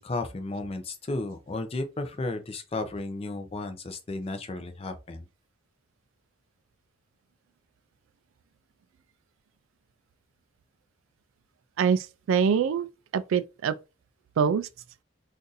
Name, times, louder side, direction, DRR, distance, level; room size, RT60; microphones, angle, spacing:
voice 1, 0.0-5.3, left 2 dB, 30° left, 0.5 m, -33 dB
voice 2, 11.8-12.9 13.1-13.7 14.4-14.7, right 6 dB, 75° right, 0.3 m, -24 dB
2.6 x 2.5 x 3.9 m
head